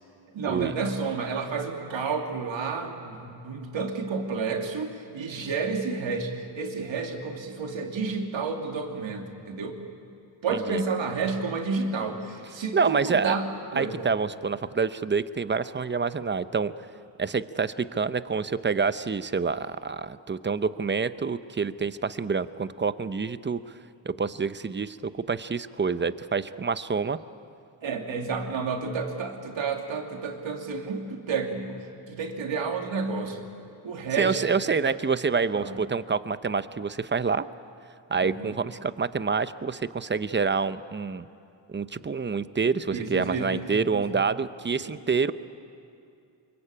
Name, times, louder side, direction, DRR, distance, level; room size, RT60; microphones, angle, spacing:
voice 1, 0.3-9.8 10.4-14.0 27.8-33.5 33.8-34.5 34.8-35.0 35.5-35.8 38.2-38.6 42.9-43.6 43.9-44.1 44.8-44.9, right 4 dB, 70° right, 2 dB, 2.9 m, -31 dB
voice 2, 10.5-10.8 12.7-13.4 13.7-16.7 17.2-23.6 24.0-27.2 34.2-37.5 38.1-41.3 41.7-45.3, right 5 dB, 25° right, 13 dB, 0.8 m, -27 dB
24.5 x 23.0 x 8.8 m, 2.6 s
cardioid pair, 80°, 48 cm